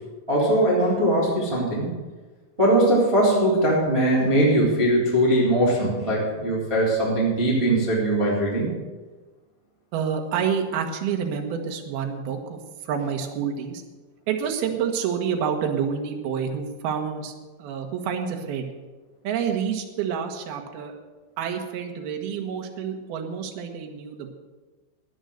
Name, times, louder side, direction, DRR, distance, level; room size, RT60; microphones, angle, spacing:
voice 1, 0.3-1.9 2.6-8.6, right 1 dB, 5° right, -6 dB, 2.8 m, -21 dB
voice 2, 9.9-13.8 14.3-17.3 17.6-18.7 19.2-20.9 21.4-24.3, right 7 dB, 70° right, 3 dB, 2.6 m, -28 dB
13.5 x 9.9 x 6.5 m, 1.3 s
omnidirectional pair, 5.8 m